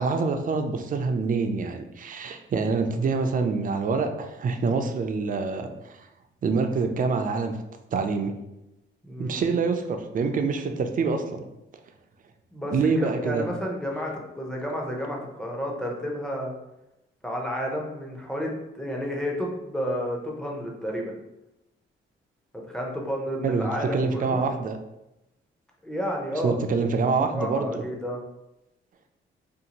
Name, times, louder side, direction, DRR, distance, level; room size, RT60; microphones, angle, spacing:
voice 1, 0.0-6.0 6.4-7.5 7.9-8.3 9.2-11.4 12.7-13.4 23.4-24.8 26.4-27.8, right 4 dB, 40° right, 5 dB, 0.4 m, -26 dB
voice 2, 9.0-9.4 12.5-16.5 17.2-21.1 22.7-24.4 25.8-26.6 27.2-28.2, equal, 5° left, -1 dB, 0.6 m, -31 dB
2.6 x 2.4 x 2.8 m, 0.91 s
cardioid pair, 100°, 21 cm